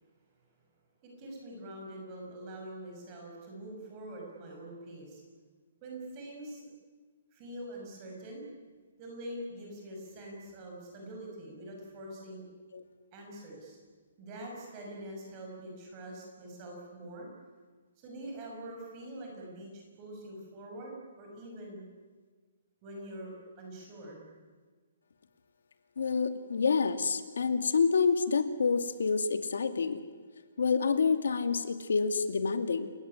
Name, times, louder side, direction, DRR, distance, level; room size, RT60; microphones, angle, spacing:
voice 1, 1.0-5.2 5.8-6.6 7.3-8.5 9.0-12.4 13.1-13.8 14.2-17.3 18.0-21.8 22.8-24.3, right 1 dB, 20° right, 0 dB, 6.2 m, -44 dB
voice 2, 26.0-30.0 30.6-32.9, left 5 dB, 85° left, 9 dB, 2.4 m, -28 dB
29.0 x 17.0 x 9.9 m, 1.5 s
hypercardioid pair, 180°, 0 cm